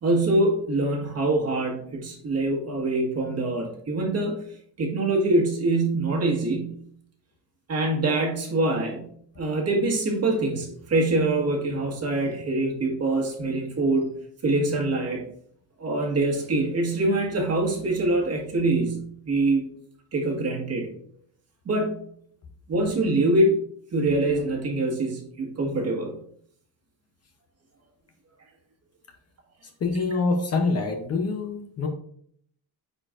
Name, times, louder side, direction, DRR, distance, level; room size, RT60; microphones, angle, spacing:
voice 1, 0.0-4.4 4.8-6.8 7.7-14.1 14.4-15.2 15.8-19.6 20.1-20.9 21.6-22.0 22.7-23.5 23.9-26.1, right 2 dB, 35° right, 0 dB, 1.6 m, -24 dB
voice 2, 29.8-31.9, left 3 dB, 35° left, 4 dB, 0.8 m, -25 dB
9.6 x 4.5 x 2.5 m, 0.64 s
cardioid pair, 160°, 43 cm